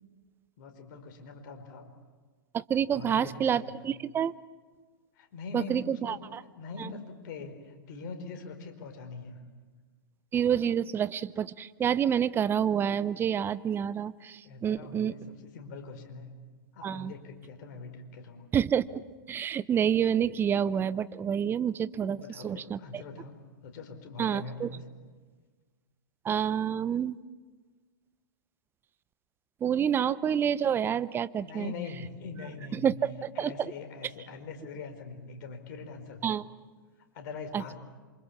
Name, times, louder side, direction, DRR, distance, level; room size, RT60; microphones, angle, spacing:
voice 1, 0.6-1.9 2.9-3.8 5.2-6.2 6.6-9.4 14.4-16.3 16.7-18.5 22.1-23.4 23.6-24.8 31.4-33.0 33.3-36.3 37.1-37.7, left 4 dB, 50° left, 5 dB, 4.7 m, -42 dB
voice 2, 2.5-4.3 5.5-6.4 10.3-15.1 16.8-17.1 18.5-19.0 19.3-22.8 24.2-24.7 26.2-27.2 29.6-31.7 32.7-33.5 36.2-36.4 37.5-37.7, right 8 dB, 20° right, 17 dB, 0.7 m, -28 dB
27.5 x 25.5 x 7.2 m, 1.4 s
hypercardioid pair, 115°, 12 cm